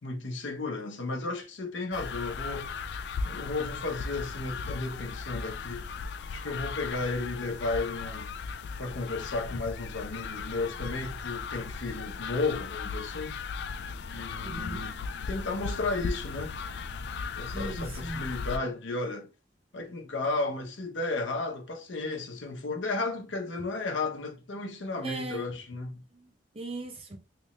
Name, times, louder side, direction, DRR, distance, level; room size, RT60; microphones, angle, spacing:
voice 1, 0.0-3.0 3.2-5.8 6.3-8.3 8.8-13.4 14.1-15.0 15.3-16.5 17.4-19.3 19.7-26.0, left 3 dB, 90° left, 0.8 m, -34 dB
sound 1, 1.9-18.6, left 5 dB, 65° left, 0.3 m, -37 dB
voice 2, 14.4-14.9 17.5-18.2 25.0-25.6 26.1-27.2, right 2 dB, 30° right, 0.7 m, -39 dB
3.3 x 3.0 x 3.1 m
head